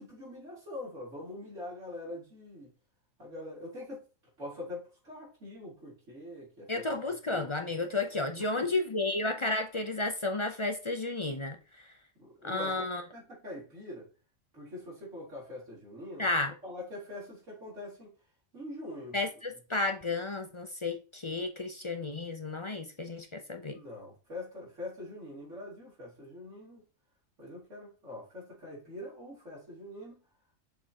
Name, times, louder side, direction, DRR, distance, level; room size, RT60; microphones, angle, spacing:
voice 1, 0.0-2.7 3.2-4.0 4.4-7.4 8.4-8.7 12.2-12.8 13.1-14.1 14.5-16.3 16.6-18.1 18.5-19.2 23.6-26.8 27.4-30.2, left 1 dB, 70° right, 3.6 m, -44 dB
voice 2, 6.7-11.6 12.4-13.0 16.2-16.5 19.1-23.8, left 2 dB, 35° left, 0.5 m, -32 dB
7.0 x 5.4 x 2.9 m
omnidirectional pair, 1.3 m